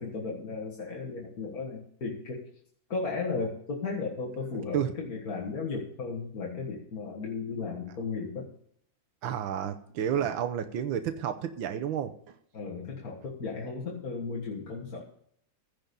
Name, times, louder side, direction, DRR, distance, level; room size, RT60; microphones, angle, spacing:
voice 1, 0.0-2.4 2.9-8.5 10.2-10.3 12.5-15.0, left 4 dB, 50° left, -3 dB, 2.0 m, -35 dB
voice 2, 9.2-12.3, right 9 dB, 90° right, 7 dB, 1.7 m, -31 dB
15.5 x 5.3 x 6.9 m, 0.67 s
omnidirectional pair, 2.1 m